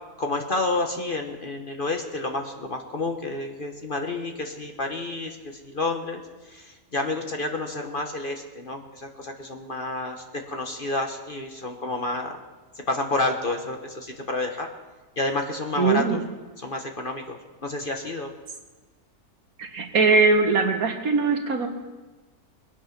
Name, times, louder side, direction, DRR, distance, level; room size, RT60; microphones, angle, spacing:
voice 1, 0.2-5.4 5.6-6.2 6.5-12.4 12.9-14.7 15.2-16.2 16.6-18.3, left 2 dB, 35° left, 4 dB, 1.3 m, -29 dB
voice 2, 15.8-16.2 19.6-21.7, right 4 dB, 65° right, 5 dB, 1.8 m, -21 dB
21.5 x 8.8 x 5.9 m, 1.3 s
omnidirectional pair, 1.6 m